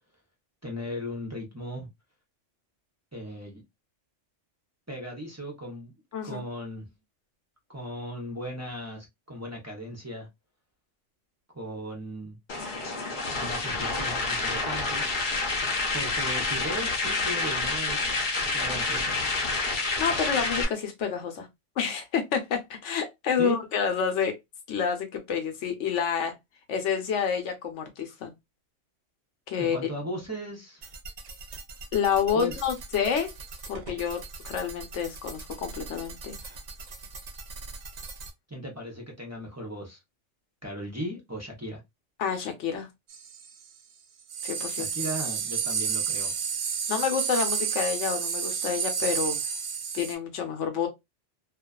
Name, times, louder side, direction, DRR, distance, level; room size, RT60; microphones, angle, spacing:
voice 1, 0.6-1.9 3.1-3.6 4.9-5.9 6.2-6.9 7.7-10.3 11.5-12.4 13.4-15.1 15.9-18.1 18.5-19.1 23.4-23.6 29.6-30.9 32.3-32.6 38.5-40.0 40.6-41.8 44.8-46.3, equal, 20° right, 0.4 m, -37 dB
voice 2, 6.1-6.4 20.0-21.5 21.8-24.3 24.7-26.3 26.7-28.3 29.5-29.8 31.9-33.3 33.7-36.5 42.2-42.9 44.4-44.9 46.9-49.4 49.9-50.9, left 7 dB, 75° left, 1.0 m, -28 dB
sound 1, 12.5-20.6, left 3 dB, 50° left, 0.7 m, -28 dB
sound 2, 30.8-38.3, right 3 dB, 90° right, 0.3 m, -42 dB
sound 3, 43.1-43.5 44.3-50.1, right 6 dB, 65° right, 0.8 m, -30 dB
2.3 x 2.3 x 2.2 m
omnidirectional pair, 1.3 m